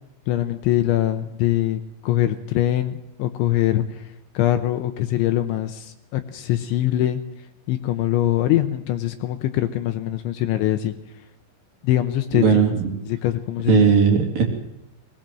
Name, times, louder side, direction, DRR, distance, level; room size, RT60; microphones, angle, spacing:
voice 1, 0.3-4.0 4.3-7.2 7.7-10.9 11.8-12.6 13.2-13.9, left 13 dB, 75° left, 9 dB, 3.0 m, -23 dB
voice 2, 12.3-12.9 13.7-14.4, right 6 dB, 45° right, 1 dB, 4.1 m, -17 dB
21.0 x 20.5 x 7.6 m, 0.85 s
omnidirectional pair, 5.9 m